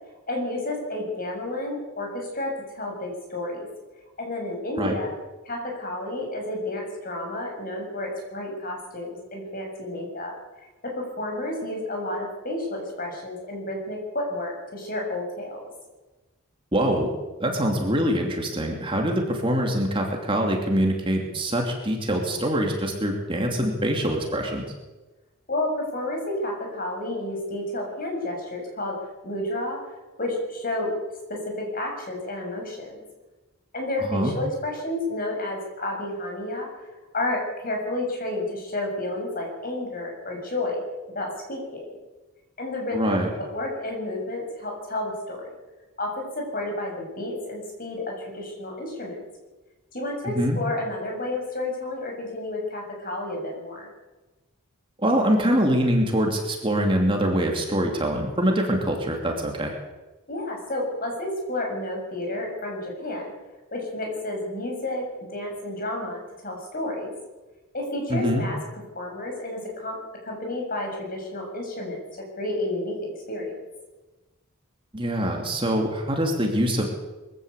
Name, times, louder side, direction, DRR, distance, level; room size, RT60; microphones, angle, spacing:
voice 1, 0.3-3.7 4.2-5.1 5.4-10.3 10.8-15.6 25.5-29.0 29.2-29.8 30.2-30.9 31.3-33.0 33.7-36.7 37.1-40.8 41.1-41.9 42.6-45.5 46.0-49.2 49.9-53.9 60.3-63.3 63.7-65.0 65.3-67.1 67.7-68.6 68.9-69.9 70.2-72.0 72.4-73.5, left 1 dB, 40° left, 1 dB, 6.6 m, -31 dB
voice 2, 16.7-17.1 17.4-24.7 34.1-34.3 42.9-43.3 50.2-50.6 55.0-59.7 68.1-68.5 74.9-76.9, equal, 25° right, 1 dB, 2.7 m, -24 dB
22.5 x 15.0 x 8.3 m, 1.2 s
head